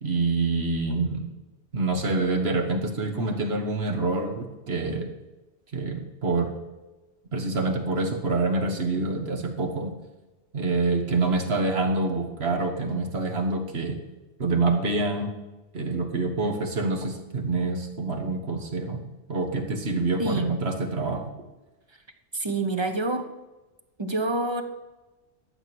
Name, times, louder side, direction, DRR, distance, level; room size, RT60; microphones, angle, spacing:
voice 1, 0.0-1.3 1.7-5.1 5.7-6.5 7.3-9.9 10.5-14.0 14.4-15.3 15.7-19.0 19.3-21.2, right 3 dB, 65° right, 4 dB, 1.8 m, -26 dB
voice 2, 20.2-20.5 22.3-23.3 24.0-24.6, right 2 dB, 25° right, 7 dB, 0.9 m, -27 dB
12.0 x 7.5 x 6.2 m, 1.1 s
omnidirectional pair, 1.2 m